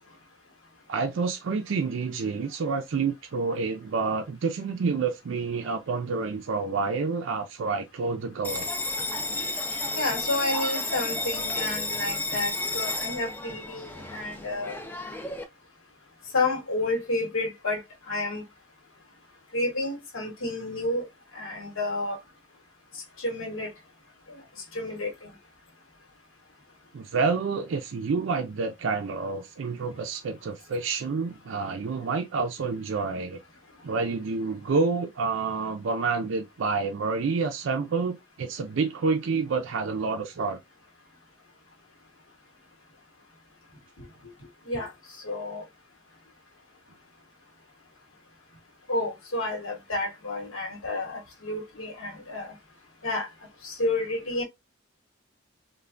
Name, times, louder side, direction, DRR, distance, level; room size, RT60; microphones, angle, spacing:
voice 1, 0.9-8.7 26.9-33.4 33.8-40.6, right 4 dB, 65° right, 0.4 m, -28 dB
Bell, 8.4-15.4, left 2 dB, 10° left, 0.3 m, -32 dB
voice 2, 9.9-14.8 16.3-17.8 18.1-18.4 19.5-21.1 21.3-22.2 23.2-23.7 24.7-25.1 44.7-44.9 45.2-45.6 48.9-52.5 53.0-53.3 53.6-54.4, left 2 dB, 75° left, 1.1 m, -30 dB
3.2 x 2.1 x 2.4 m
head